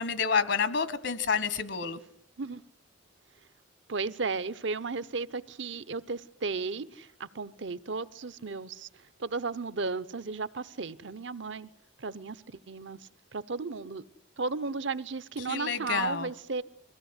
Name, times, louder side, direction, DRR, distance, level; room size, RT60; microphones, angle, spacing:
voice 1, 0.0-2.0 15.5-16.3, left 5 dB, 70° left, 13 dB, 1.4 m, -29 dB
voice 2, 3.9-8.9 9.2-11.7 12.0-13.0 13.3-14.0 14.4-16.6, right 4 dB, 75° right, 15 dB, 0.9 m, -34 dB
23.0 x 16.5 x 9.8 m, 0.77 s
head